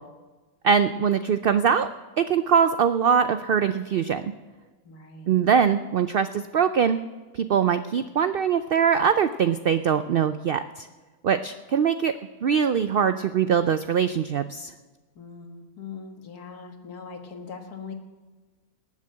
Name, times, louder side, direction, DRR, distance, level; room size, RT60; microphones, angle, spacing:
voice 1, 0.6-1.9 2.2-4.3 5.3-7.0 7.3-10.9 11.2-12.1 12.4-14.7, right 7 dB, 80° right, 11 dB, 0.5 m, -22 dB
voice 2, 4.9-5.4 15.2-17.9, left 5 dB, 85° left, 5 dB, 2.0 m, -41 dB
19.0 x 7.4 x 7.6 m, 1.3 s
omnidirectional pair, 1.6 m